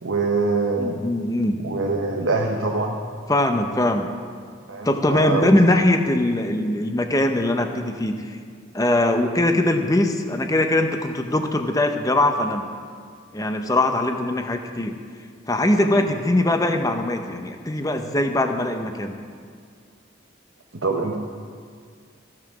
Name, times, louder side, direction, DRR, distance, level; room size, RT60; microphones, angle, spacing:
voice 1, 0.0-1.0 1.6-3.0 4.7-5.5 15.8-16.1 20.7-21.1, right 3 dB, 80° right, 0 dB, 1.0 m, -24 dB
voice 2, 0.8-1.6 3.3-4.1 4.8-8.4 8.7-12.7 13.3-15.0 15.5-19.2, left 1 dB, 15° left, 6 dB, 0.7 m, -21 dB
14.5 x 7.6 x 6.1 m, 2.1 s
head